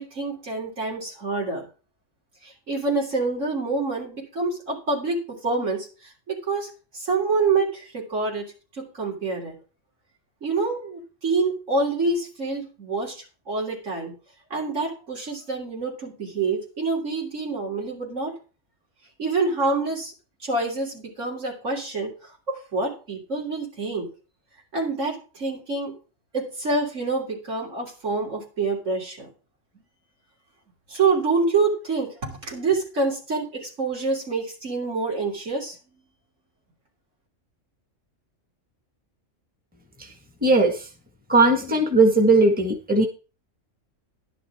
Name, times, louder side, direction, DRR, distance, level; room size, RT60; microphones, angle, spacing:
voice 1, 0.0-1.7 2.4-9.5 10.4-14.1 14.5-18.3 19.2-20.1 20.4-22.1 22.5-24.1 24.7-26.0 26.3-29.3 30.9-35.8, right 3 dB, 75° right, -3 dB, 3.7 m, -27 dB
voice 2, 40.4-40.9 41.3-43.1, right 2 dB, 5° right, 3 dB, 1.6 m, -18 dB
11.5 x 10.0 x 3.7 m, 0.34 s
omnidirectional pair, 1.3 m